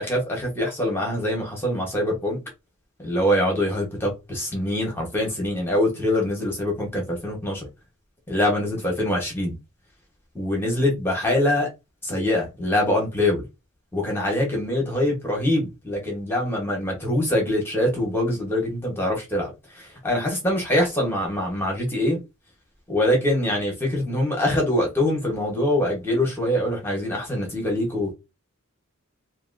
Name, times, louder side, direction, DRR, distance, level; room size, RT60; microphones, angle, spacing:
voice 1, 0.1-2.4 3.0-7.7 8.3-9.6 10.3-11.7 12.0-13.4 13.9-22.2 22.9-28.1, left 1 dB, 10° left, 1.2 m, -24 dB
2.8 x 2.7 x 2.6 m
head